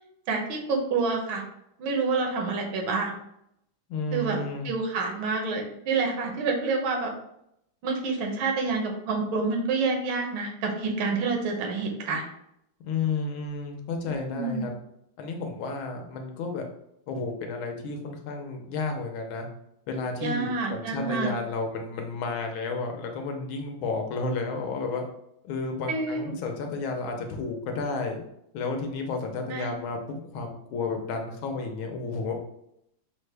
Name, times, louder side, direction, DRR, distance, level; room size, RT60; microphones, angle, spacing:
voice 1, 0.3-1.4 1.8-3.1 4.1-4.4 4.6-7.1 7.8-12.2 14.0-14.6 20.2-21.3 25.9-26.4 29.5-29.7, right 4 dB, 80° right, 2 dB, 1.6 m, -28 dB
voice 2, 3.9-4.7 12.8-14.7 15.2-16.6 17.1-19.5 19.9-25.0 25.4-28.2 28.5-32.4, left 3 dB, 80° left, 3 dB, 1.5 m, -32 dB
6.0 x 2.1 x 3.3 m, 0.78 s
omnidirectional pair, 2.2 m